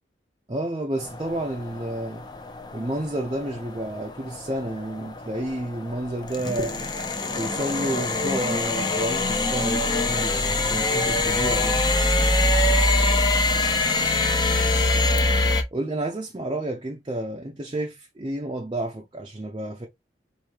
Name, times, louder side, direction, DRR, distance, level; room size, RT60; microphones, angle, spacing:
voice 1, 0.5-2.2 2.7-6.8 7.3-11.8 15.7-19.9, right 1 dB, 25° right, 0.5 m, -30 dB
sound 1, 1.0-15.6, left 2 dB, 25° left, 0.6 m, -23 dB
4.9 x 2.7 x 2.9 m
head